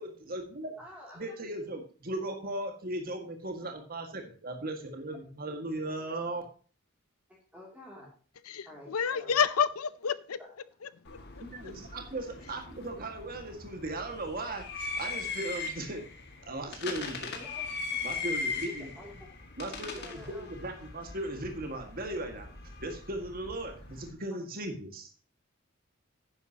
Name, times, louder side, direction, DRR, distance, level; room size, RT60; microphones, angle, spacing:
voice 1, 0.0-0.7 1.2-6.4 11.4-16.0 16.4-17.4 18.0-18.9 19.6-22.5 22.8-25.1, right 1 dB, 45° right, 1.8 m, -37 dB
voice 2, 0.8-1.3 7.3-8.1 8.6-9.4 17.3-17.7 18.7-19.3 20.0-20.5, left 1 dB, 5° right, 2.6 m, -49 dB
voice 3, 8.4-10.4 10.8-11.7, left 7 dB, 85° left, 0.6 m, -30 dB
sound 1, 11.0-24.1, left 4 dB, 50° left, 1.9 m, -40 dB
11.0 x 9.8 x 2.9 m
head